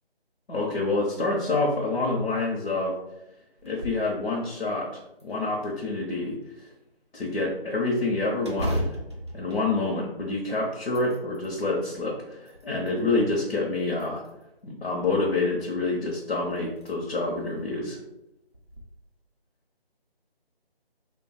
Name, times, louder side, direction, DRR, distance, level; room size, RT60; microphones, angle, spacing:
voice 1, 0.5-2.9 3.6-6.7 7.1-9.0 9.3-14.2 14.6-18.0, left 2 dB, 65° left, -3 dB, 0.8 m, -27 dB
sound 1, 3.6-4.1 4.6-4.7 5.2-6.0 8.4-10.4 10.8-11.5 12.2-13.0 13.9-14.6 16.1-16.2 16.7-16.9 17.4-17.5 18.5-18.8, equal, 30° right, 0.5 m, -35 dB
2.6 x 2.3 x 4.0 m, 0.90 s
figure-of-eight pair, 160°, 31 cm